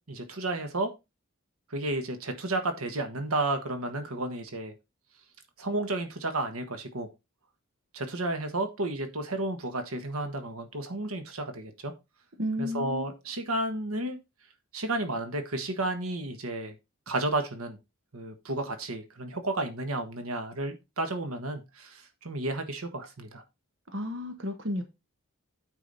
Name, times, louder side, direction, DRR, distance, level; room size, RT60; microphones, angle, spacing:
voice 1, 0.1-0.9 1.7-4.7 5.6-7.1 7.9-11.9 12.6-14.2 14.7-16.7 17.1-17.8 18.1-23.4, right 2 dB, 85° right, 1.5 m, -32 dB
voice 2, 12.4-13.1 23.9-24.8, left 1 dB, 60° right, 1.2 m, -32 dB
9.1 x 4.9 x 4.0 m
head